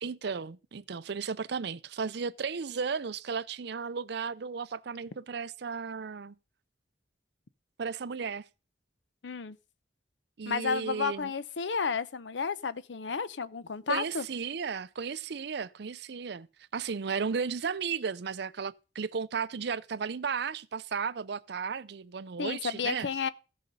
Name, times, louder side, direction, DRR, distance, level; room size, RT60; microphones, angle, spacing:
voice 1, 0.0-6.3 7.8-8.4 10.4-11.3 13.9-16.5 16.7-23.1, right 5 dB, 70° right, 0.5 m, -34 dB
voice 2, 9.2-9.6 10.5-14.3 22.4-23.3, left 5 dB, 90° left, 0.7 m, -32 dB
15.0 x 6.4 x 5.4 m
head